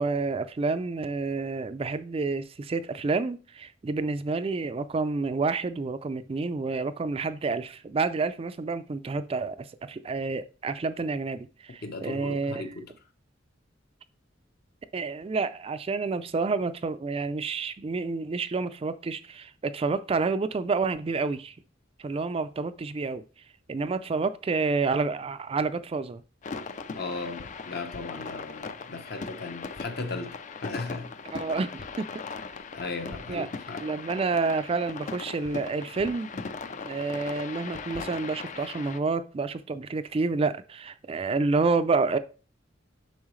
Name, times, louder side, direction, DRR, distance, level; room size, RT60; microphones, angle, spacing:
voice 1, 0.0-12.6 14.9-21.5 22.0-23.2 23.7-26.2 31.3-32.2 33.1-33.5 33.8-36.3 36.8-42.2, right 4 dB, 30° right, 0.3 m, -29 dB
voice 2, 11.8-12.9 26.9-31.1 32.7-33.9, left 3 dB, 55° left, 1.0 m, -36 dB
sound 1, 26.4-39.0, left 4 dB, 40° left, 0.4 m, -39 dB
7.3 x 5.6 x 3.1 m
head